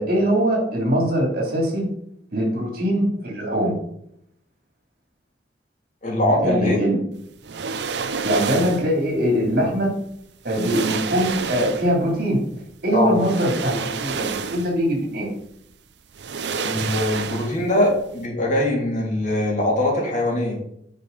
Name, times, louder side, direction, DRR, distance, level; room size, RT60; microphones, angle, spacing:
voice 1, 0.0-1.8 2.3-3.7 6.4-7.0 8.2-9.9 10.4-12.4 12.8-15.3, equal, 60° right, -1 dB, 3.2 m, -22 dB
voice 2, 6.0-6.8 12.9-13.1 16.6-20.6, left 1 dB, 45° left, -2 dB, 2.8 m, -22 dB
sound 1, 7.4-8.9 10.0-10.1 10.5-12.1 13.1-14.9 15.2-15.3 16.1-17.8 18.0-18.2, right 5 dB, 75° right, 0.6 m, -29 dB
9.7 x 5.7 x 4.1 m, 0.73 s
head